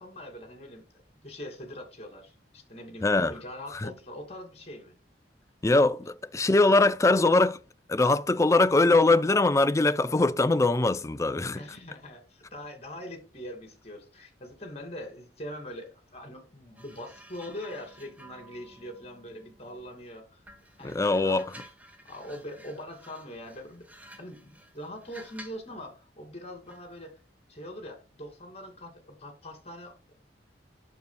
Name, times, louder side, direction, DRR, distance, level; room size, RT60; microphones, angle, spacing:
voice 1, 0.0-5.0 11.5-20.4 20.8-21.0 21.2-21.5 22.0-23.8 24.2-27.2 27.5-30.1, left 1 dB, 35° left, 2.3 m, -42 dB
voice 2, 3.0-3.3 3.7-3.9 5.6-7.6 7.9-11.6 20.8-21.5, left 2 dB, 15° left, 0.4 m, -22 dB
sound 1, 16.8-20.0 20.4-25.7 26.7-26.9, right 1 dB, 10° right, 1.2 m, -52 dB
9.2 x 6.8 x 2.2 m
head